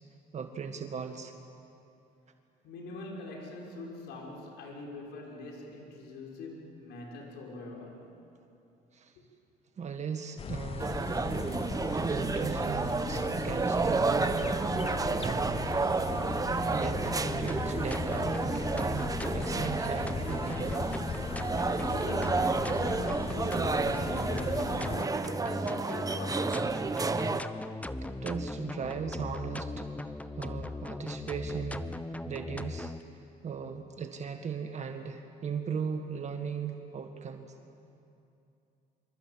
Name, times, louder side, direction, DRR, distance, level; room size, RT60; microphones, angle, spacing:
voice 1, 0.3-1.3 8.9-9.1 9.8-11.3 11.9-14.4 14.8-15.7 16.1-16.2 16.7-20.8 28.2-31.9 32.3-37.5, right 6 dB, 45° right, 6 dB, 1.7 m, -38 dB
voice 2, 2.6-8.1 9.2-9.3 21.9-26.8, left 2 dB, 85° left, -1 dB, 5.7 m, -43 dB
sound 1, 10.4-25.1, left 7 dB, 35° left, 0.7 m, -38 dB
sound 2, 10.8-27.4, right 4 dB, 20° right, 1.0 m, -31 dB
sound 3, 16.7-33.0, left 2 dB, 10° left, 0.9 m, -38 dB
26.0 x 25.0 x 8.7 m, 2.7 s
cardioid pair, 110°, 17 cm